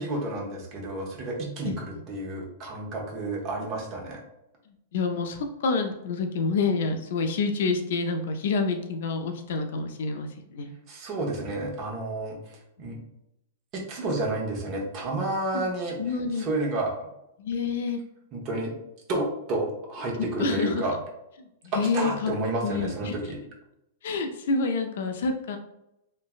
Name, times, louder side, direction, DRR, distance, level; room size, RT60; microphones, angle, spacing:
voice 1, 0.0-4.2 10.9-13.0 13.7-16.0 16.4-16.9 18.3-18.7 19.1-21.0 21.9-23.4, right 2 dB, 40° right, -2 dB, 0.9 m, -30 dB
voice 2, 4.9-10.7 12.8-12.9 15.5-15.6 16.0-16.5 17.4-18.0 20.2-20.9 21.6-22.3 22.6-23.3 24.0-25.6, left 4 dB, 70° left, 6 dB, 0.4 m, -28 dB
3.1 x 2.1 x 2.3 m, 0.83 s
hypercardioid pair, 125°, 0 cm